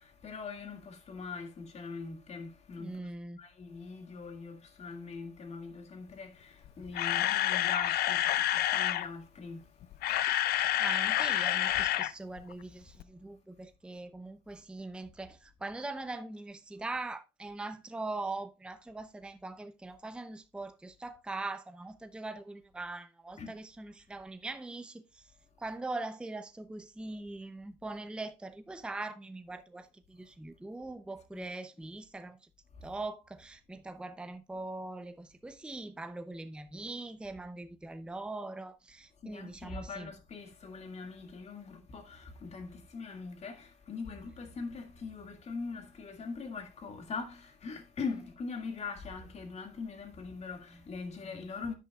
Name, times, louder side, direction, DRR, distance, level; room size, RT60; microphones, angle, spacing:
voice 1, 0.0-3.1 3.4-9.7 23.4-23.5 31.3-31.4 39.2-51.7, left 4 dB, 40° left, 2.1 m, -42 dB
voice 2, 2.8-3.4 10.5-25.2 25.6-32.4 32.8-40.1 50.7-50.8 51.2-51.5, right 2 dB, 5° right, 0.6 m, -41 dB
Camera, 6.7-9.1 9.8-12.1 12.4-12.5 13.0-13.1, left 13 dB, 65° left, 0.6 m, -28 dB
10.5 x 8.4 x 2.4 m
cardioid pair, 110°, 17 cm